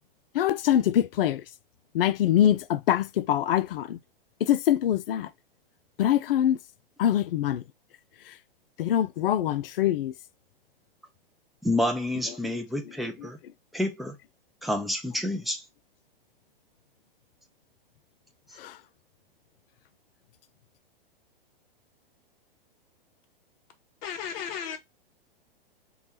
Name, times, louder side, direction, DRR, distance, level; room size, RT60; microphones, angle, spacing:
voice 1, 0.3-1.5 1.9-4.0 4.4-5.3 6.0-6.6 7.0-7.6 8.2-8.4 8.8-10.1 12.3-12.6 12.8-12.9 13.2-13.3 18.6-18.8, left 11 dB, 70° left, 0.4 m, -24 dB
voice 2, 11.6-13.4 13.7-14.1 14.6-15.6, left 1 dB, ahead, 0.4 m, -28 dB
voice 3, 24.0-24.8, left 8 dB, 40° left, 0.9 m, -34 dB
3.2 x 2.3 x 4.0 m
hypercardioid pair, 110°, 29 cm